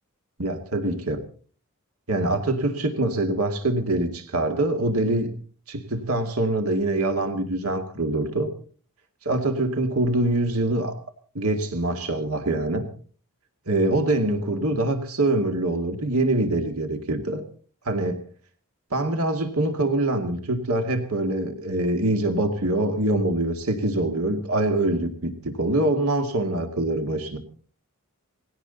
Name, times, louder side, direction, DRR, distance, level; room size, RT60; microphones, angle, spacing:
voice 1, 0.4-1.2 2.1-5.3 5.7-8.5 9.3-11.0 11.3-12.9 13.7-17.4 17.9-18.2 18.9-27.4, right 2 dB, 90° right, 5 dB, 2.4 m, -24 dB
20.0 x 16.5 x 4.0 m, 0.42 s
head